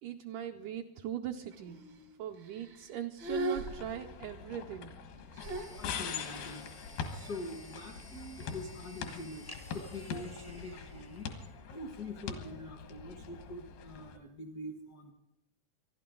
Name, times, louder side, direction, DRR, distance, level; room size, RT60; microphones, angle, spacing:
voice 1, 0.0-1.8 2.2-4.9, right 10 dB, 80° right, 3 dB, 1.8 m, -40 dB
sound 1, 1.5-2.1 2.4-2.9 3.2-4.4 5.4-6.6, right 2 dB, 65° right, 1.1 m, -39 dB
sound 2, 3.7-14.2, left 6 dB, 85° left, 3.4 m, -43 dB
sound 3, 5.4-12.0, left 1 dB, 25° left, 0.4 m, -54 dB
voice 2, 5.8-6.8 7.1-9.5 9.7-11.3 11.7-15.1, left 2 dB, 65° left, 1 dB, 1.0 m, -44 dB
26.5 x 11.5 x 3.8 m, 0.82 s
omnidirectional pair, 4.3 m